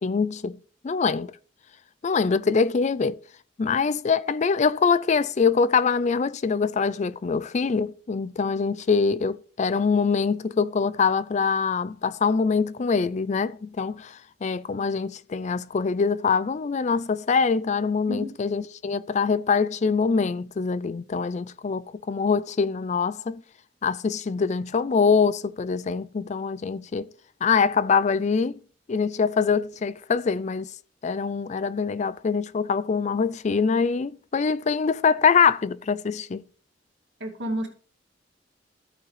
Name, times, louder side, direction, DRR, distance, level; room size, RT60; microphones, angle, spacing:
voice 1, 0.0-0.6 0.8-1.3 2.0-3.2 3.6-23.4 23.8-27.1 27.4-28.6 28.9-30.7 31.0-36.4, left 5 dB, 40° left, 0.4 m, -24 dB
voice 2, 37.2-37.7, right 1 dB, 85° right, 2.3 m, -30 dB
13.0 x 8.6 x 3.2 m
head